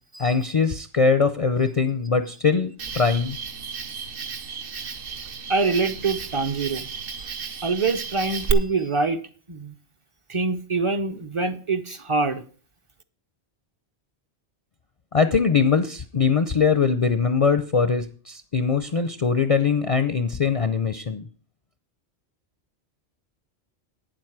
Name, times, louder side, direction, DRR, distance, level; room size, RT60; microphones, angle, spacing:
voice 1, 0.2-3.4 15.1-21.3, left 5 dB, 40° left, 10 dB, 0.5 m, -22 dB
Cricket, 2.8-8.5, right 5 dB, 60° right, 1.0 m, -33 dB
voice 2, 5.5-6.9 7.6-9.2 9.5-9.7 10.3-12.4, right 4 dB, 35° right, 9 dB, 0.7 m, -25 dB
9.1 x 7.7 x 6.0 m, 0.40 s
omnidirectional pair, 1.1 m